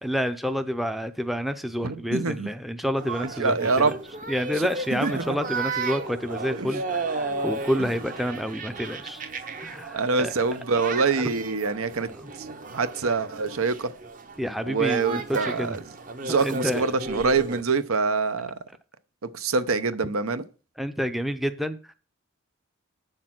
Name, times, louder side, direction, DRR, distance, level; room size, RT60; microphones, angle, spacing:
voice 1, 0.0-3.9 4.3-9.2 9.6-10.3 11.2-11.3 12.2-12.3 14.4-15.8 16.4-16.8 20.8-21.9, equal, ahead, 0.5 m, -29 dB
voice 2, 1.8-2.5 3.4-3.9 4.6-4.7 5.0-5.1 6.6-6.7 9.9-12.1 12.7-13.9 14.7-15.8 16.2-18.5 19.2-20.4, right 4 dB, 80° right, 0.8 m, -25 dB
sound 1, 3.0-17.6, right 3 dB, 40° right, 0.8 m, -34 dB
8.4 x 6.7 x 6.0 m
head